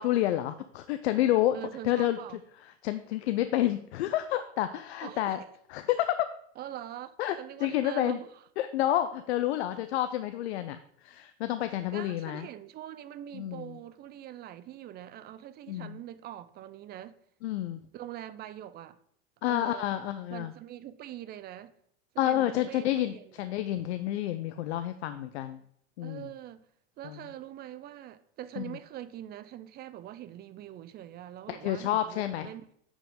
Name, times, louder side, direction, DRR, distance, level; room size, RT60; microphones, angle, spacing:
voice 1, 0.0-1.6 1.8-2.2 2.8-5.4 5.7-6.2 7.2-7.3 7.6-8.2 8.6-10.8 11.0-12.5 13.3-13.7 15.7-16.0 17.4-17.8 19.4-20.5 22.2-25.6 26.0-26.2 27.0-27.2 28.6-28.7 31.5-32.5, left 13 dB, 85° left, 0.5 m, -29 dB
voice 2, 1.5-2.4 5.0-5.4 6.6-8.3 11.9-17.2 17.9-19.0 19.5-19.9 20.3-21.7 22.2-23.3 26.0-26.7 27.0-32.7, right 12 dB, 30° right, 0.4 m, -43 dB
8.6 x 5.1 x 3.6 m
supercardioid pair, 120°, 32 cm